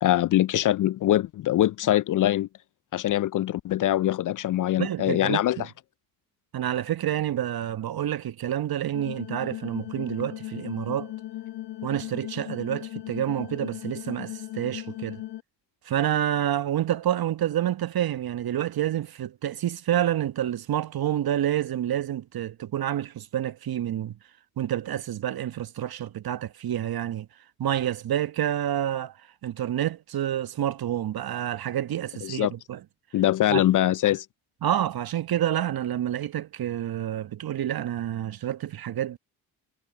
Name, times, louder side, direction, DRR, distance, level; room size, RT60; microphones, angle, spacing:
voice 1, 0.0-2.5 2.9-5.7 32.2-32.5 33.1-34.3, left 13 dB, 45° left, 0.4 m, -23 dB
voice 2, 4.8-5.7 6.5-11.1 11.8-15.2 15.8-24.2 24.6-27.3 27.6-32.8 33.5-33.6 34.6-39.2, right 11 dB, 50° right, 1.2 m, -28 dB
sound 1, 8.9-15.4, left 15 dB, 65° left, 1.2 m, -37 dB
supercardioid pair, 55°, 45 cm